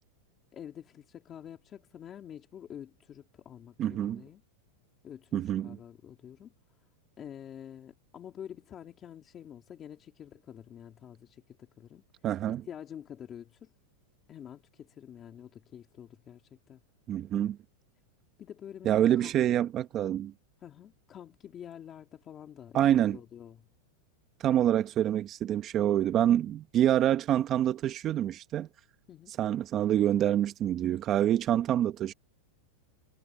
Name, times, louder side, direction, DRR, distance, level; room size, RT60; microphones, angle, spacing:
voice 1, 0.5-4.4 5.0-6.5 7.2-12.1 12.5-13.7 14.3-16.8 18.4-19.3 20.6-23.7 29.1-29.4, left 9 dB, 25° left, 2.6 m, -47 dB
voice 2, 3.8-4.2 5.3-5.8 12.2-12.7 17.1-17.6 18.8-20.3 22.7-23.2 24.4-28.7 29.3-32.1, right 11 dB, 30° right, 1.1 m, -26 dB
supercardioid pair, 155°, 0 cm